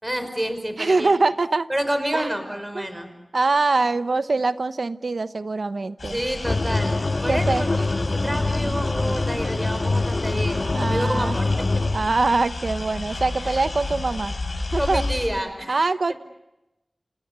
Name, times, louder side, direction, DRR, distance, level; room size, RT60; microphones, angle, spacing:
voice 1, 0.0-1.1 1.7-3.1 6.1-7.7 8.1-11.7 13.4-13.5 14.8-15.9, equal, 15° right, 8 dB, 5.2 m, -29 dB
voice 2, 0.8-1.7 2.1-2.3 2.7-2.9 3.3-6.2 7.3-7.6 10.6-11.4 11.9-14.4 14.7-15.0 15.7-16.1, right 3 dB, 75° right, 12 dB, 0.9 m, -23 dB
sound 1, 6.0-15.3, left 2 dB, 75° left, 5.7 m, -31 dB
sound 2, 6.4-12.1, left 2 dB, 55° left, 1.8 m, -24 dB
28.5 x 28.0 x 6.7 m, 0.94 s
wide cardioid pair, 70°, 0 cm